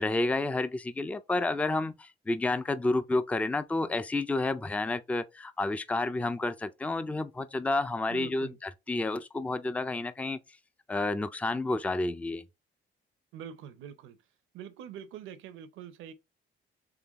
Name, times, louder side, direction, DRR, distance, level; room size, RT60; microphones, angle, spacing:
voice 1, 0.0-10.4 10.9-12.4, left 2 dB, 5° left, 0.3 m, -30 dB
voice 2, 8.1-8.6 13.3-14.2 14.5-16.1, right 9 dB, 90° right, 0.6 m, -44 dB
3.7 x 3.4 x 2.9 m
cardioid pair, 90°, 20 cm